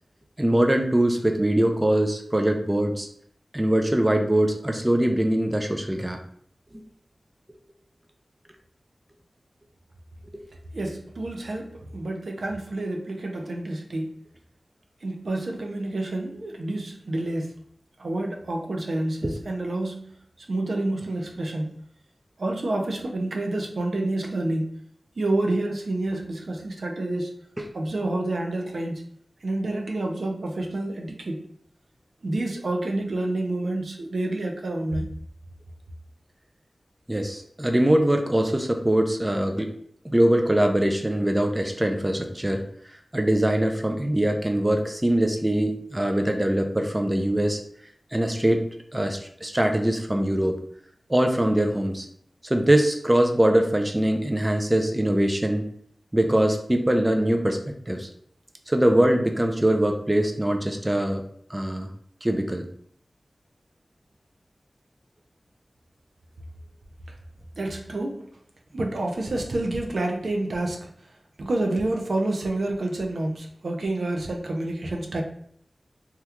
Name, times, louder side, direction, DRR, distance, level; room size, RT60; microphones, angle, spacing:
voice 1, 0.4-3.1 3.5-6.2 10.3-10.4 19.2-19.4 27.6-27.7 37.1-39.7 40.0-42.6 43.1-47.6 48.1-48.7 48.9-50.5 51.1-52.1 52.4-55.7 56.1-57.6 57.9-58.1 58.7-61.2 61.5-61.9 62.2-62.7, right 1 dB, 20° right, 4 dB, 0.4 m, -22 dB
voice 2, 10.7-14.1 15.0-17.5 18.0-20.1 20.5-21.7 22.4-24.7 25.2-27.3 27.7-29.0 29.4-31.5 32.2-35.1 67.6-68.3 68.7-70.9 71.4-75.2, right 2 dB, 75° right, 1 dB, 0.5 m, -28 dB
2.9 x 2.3 x 3.4 m, 0.66 s
wide cardioid pair, 65°, 0 cm